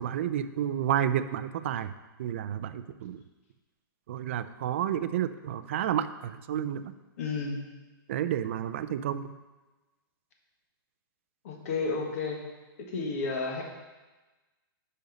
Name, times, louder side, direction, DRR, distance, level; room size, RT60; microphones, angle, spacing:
voice 1, 0.0-1.9 2.2-3.2 4.1-6.9 8.1-9.3, right 10 dB, 35° right, 11 dB, 0.3 m, -30 dB
voice 2, 7.2-7.6 11.4-12.4 12.8-13.6, left 4 dB, 40° left, 1 dB, 1.4 m, -31 dB
10.5 x 5.4 x 3.9 m, 1.2 s
hypercardioid pair, 175°, 12 cm